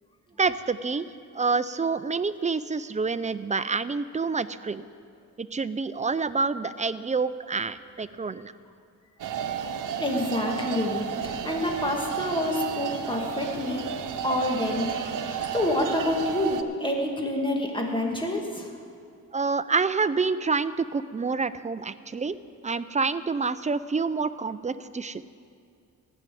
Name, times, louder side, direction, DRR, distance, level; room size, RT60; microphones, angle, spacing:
voice 1, 0.4-1.1 1.3-4.9 5.4-8.5 19.3-22.4 22.6-25.2, right 4 dB, 25° right, 14 dB, 0.4 m, -27 dB
sound 1, 9.2-16.6, right 8 dB, 75° right, 0.7 m, -32 dB
voice 2, 10.0-13.9 14.2-18.7, left 1 dB, 15° left, 0 dB, 2.1 m, -28 dB
15.0 x 6.1 x 9.2 m, 2.4 s
cardioid pair, 90°, 32 cm